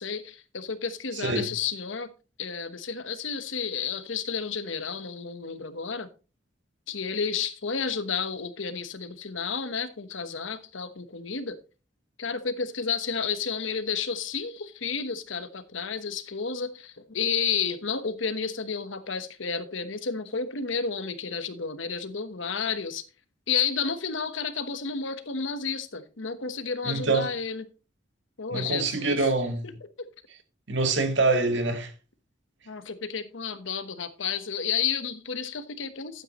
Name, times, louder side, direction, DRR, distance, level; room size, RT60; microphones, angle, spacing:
voice 1, 0.0-2.1 2.4-6.1 6.9-11.6 12.2-23.0 23.5-27.7 28.4-29.3 29.6-29.7 30.0-30.1 32.7-36.2, left 6 dB, 85° left, 1.1 m, -31 dB
voice 2, 26.8-27.3 28.5-29.7 30.7-31.9, right 3 dB, 70° right, 1.9 m, -25 dB
12.5 x 9.1 x 3.0 m
head